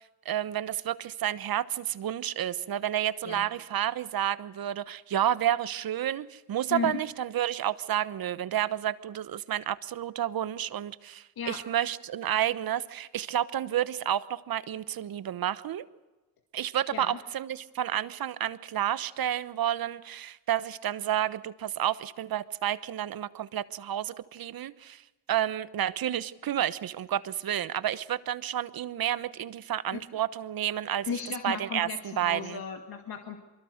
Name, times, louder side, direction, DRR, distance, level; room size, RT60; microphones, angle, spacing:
voice 1, 0.2-15.9 16.5-32.6, right 11 dB, 60° right, 15 dB, 1.1 m, -30 dB
voice 2, 31.1-33.4, left 6 dB, 60° left, 4 dB, 2.2 m, -35 dB
24.0 x 22.0 x 6.6 m, 1.2 s
supercardioid pair, 60°, 40 cm